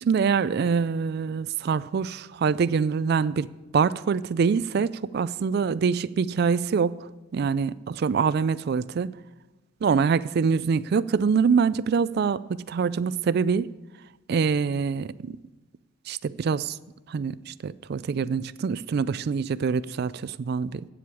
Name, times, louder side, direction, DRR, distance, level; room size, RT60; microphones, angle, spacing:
voice 1, 0.0-3.5 3.7-7.1 7.3-7.7 8.0-9.2 9.8-13.7 14.3-15.4 16.1-16.8 17.1-20.9, right 5 dB, 50° right, 0.3 m, -25 dB
8.7 x 7.6 x 8.2 m
head